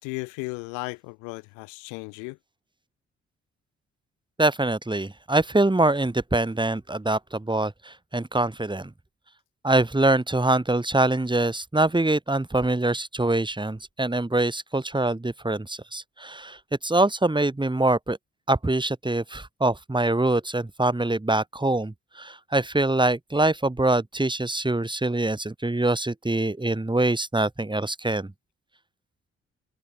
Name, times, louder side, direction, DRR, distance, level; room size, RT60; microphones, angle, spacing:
voice 1, 0.0-2.4, left 32 dB, 85° left, 6.5 m, -35 dB
voice 2, 4.4-8.9 9.6-16.6 16.8-18.2 18.5-28.3, right 2 dB, 15° right, 3.8 m, -24 dB
hypercardioid pair, 45°, 29 cm